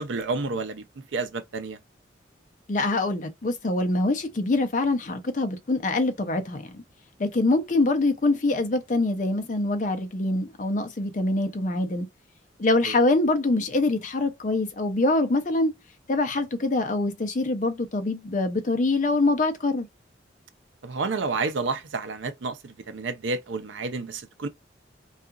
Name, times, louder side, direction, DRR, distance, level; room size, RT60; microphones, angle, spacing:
voice 1, 0.0-1.8 12.8-13.0 20.8-24.5, right 3 dB, 80° right, 0.5 m, -30 dB
voice 2, 2.7-6.8 7.2-12.1 12.6-15.7 16.1-19.9, left 2 dB, 40° left, 0.5 m, -24 dB
2.8 x 2.4 x 2.3 m
head